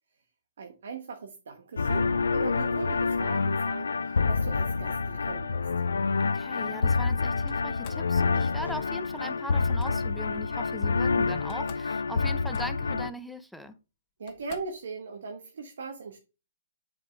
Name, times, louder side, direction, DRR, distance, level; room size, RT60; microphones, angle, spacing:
voice 1, 0.6-5.7 14.2-16.2, right 4 dB, 70° right, 1.3 m, -39 dB
sound 1, 1.8-13.1, left 4 dB, 85° left, 0.4 m, -27 dB
voice 2, 6.2-13.7, equal, ahead, 0.7 m, -40 dB
Slam, 7.5-8.1 9.5-9.9 11.0-11.1 11.3-12.0 12.2-12.9 13.7-13.8 14.3-14.8, left 8 dB, 35° left, 1.1 m, -51 dB
7.8 x 5.1 x 3.4 m
hypercardioid pair, 135°, 0 cm